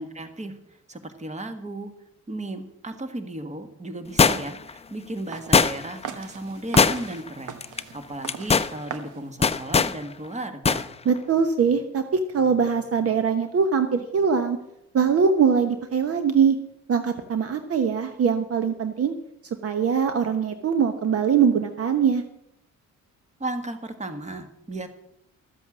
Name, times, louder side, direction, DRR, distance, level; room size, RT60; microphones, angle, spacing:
voice 1, 0.0-1.9 2.3-7.6 7.9-10.9 23.4-24.9, right 2 dB, 25° right, 8 dB, 1.7 m, -35 dB
sound 1, 4.2-4.7 5.5-6.0 6.8-7.3 7.6-7.8 8.2-8.7 9.4-10.0 10.6-10.8 11.2-11.3, left 5 dB, 20° left, 0.5 m, -19 dB
sound 2, 5.3-10.4, right 8 dB, 85° right, 1.3 m, -40 dB
voice 2, 11.0-12.0 12.3-14.6 14.9-16.6 16.9-19.1 19.6-22.2, right 6 dB, 50° right, 8 dB, 1.1 m, -22 dB
12.5 x 7.8 x 7.4 m, 0.80 s
cardioid pair, 90°, 30 cm